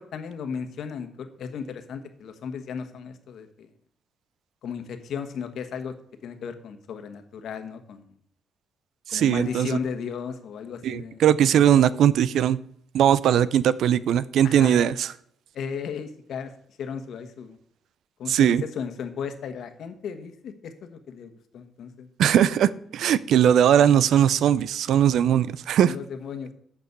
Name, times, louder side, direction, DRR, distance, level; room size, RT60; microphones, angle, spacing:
voice 1, 0.0-3.7 4.6-5.9 6.2-8.1 9.1-11.2 14.4-14.9 15.5-16.5 16.8-17.6 18.2-22.1 25.8-26.5, left 6 dB, 70° left, 8 dB, 1.3 m, -35 dB
voice 2, 9.1-9.7 10.8-12.6 12.9-15.1 18.3-18.6 22.2-25.9, right 10 dB, 75° right, 18 dB, 0.5 m, -20 dB
8.3 x 6.1 x 8.1 m, 0.68 s
cardioid pair, 90°, 0 cm